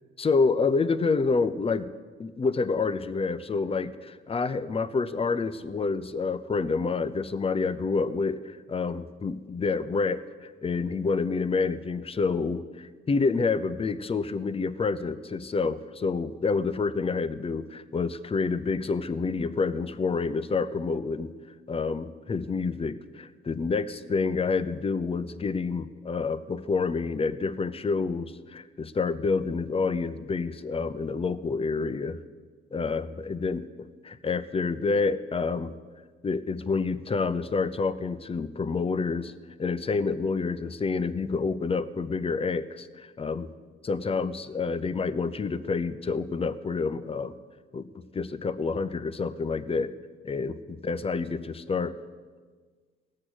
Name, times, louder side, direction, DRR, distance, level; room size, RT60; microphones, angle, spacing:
voice 1, 0.2-21.3 21.7-32.2 32.7-33.6 34.0-35.7 36.2-39.3 39.6-43.5 43.8-47.3 47.7-47.9 48.1-49.9 50.2-51.9, left 4 dB, 30° left, 12 dB, 0.7 m, -28 dB
17.5 x 7.5 x 6.4 m, 1.5 s
cardioid pair, 90°, 20 cm